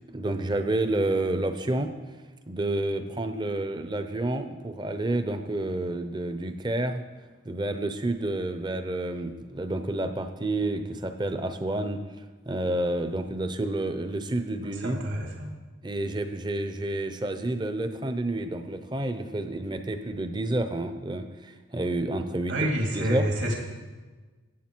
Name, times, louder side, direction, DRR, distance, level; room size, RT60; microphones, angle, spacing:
voice 1, 0.1-1.9 2.5-7.0 7.4-12.0 12.5-15.0 15.8-22.5 22.9-23.3, right 1 dB, 20° right, 8 dB, 0.6 m, -29 dB
voice 2, 14.6-15.5 22.5-23.5, right 1 dB, 70° right, 0 dB, 2.3 m, -28 dB
14.5 x 7.9 x 4.5 m, 1.3 s
head